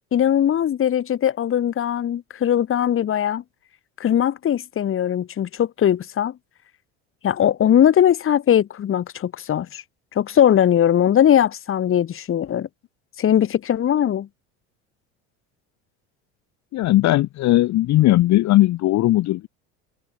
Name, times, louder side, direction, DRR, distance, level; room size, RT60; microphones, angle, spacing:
voice 1, 0.1-3.4 4.0-6.3 7.2-9.8 10.1-12.7 13.2-14.3, left 10 dB, 35° left, 1.6 m, -20 dB
voice 2, 16.7-19.5, left 16 dB, 50° left, 1.3 m, -18 dB
hypercardioid pair, 85°, 35 cm